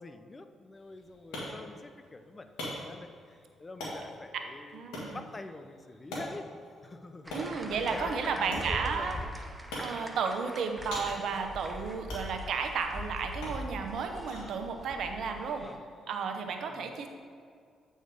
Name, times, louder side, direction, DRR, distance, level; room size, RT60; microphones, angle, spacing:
voice 1, 0.0-6.5 6.8-7.3 7.7-9.3 15.6-15.8 16.7-16.9, left 2 dB, 30° left, 9 dB, 0.5 m, -45 dB
sound 1, 0.7-16.3, left 1 dB, 90° left, 1.8 m, -45 dB
voice 2, 4.7-5.2 7.3-9.1 9.8-15.7 16.1-17.1, right 5 dB, 70° right, 5 dB, 0.8 m, -33 dB
sound 2, 7.2-15.8, equal, 10° right, 0.8 m, -42 dB
8.1 x 4.4 x 4.7 m, 2.2 s
supercardioid pair, 65°, 0 cm